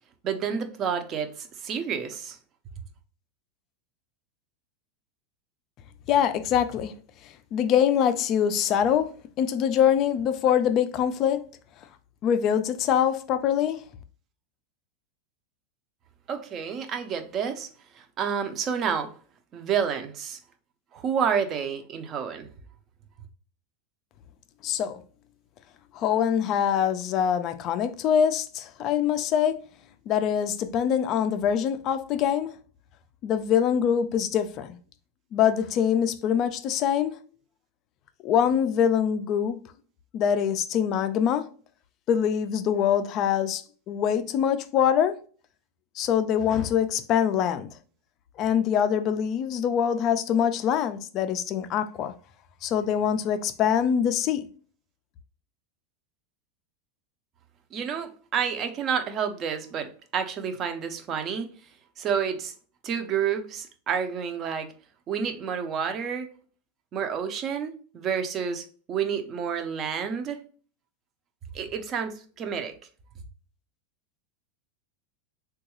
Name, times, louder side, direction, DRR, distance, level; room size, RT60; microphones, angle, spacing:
voice 1, 0.2-2.4 16.3-17.7 17.9-19.1 19.5-20.4 20.9-22.5 57.7-61.5 62.0-62.5 62.8-64.7 65.1-66.3 66.9-70.4 71.5-72.8, right 7 dB, 25° right, 0.5 m, -29 dB
voice 2, 6.1-6.9 7.2-9.1 9.4-11.4 12.2-13.8 24.6-25.0 25.9-29.6 30.1-32.5 33.2-34.7 35.3-37.1 38.2-39.6 40.1-41.5 42.1-45.2 46.0-47.7 48.4-52.1 52.6-54.5, left 8 dB, 35° left, 0.3 m, -24 dB
3.7 x 2.3 x 2.9 m
supercardioid pair, 160°, 0 cm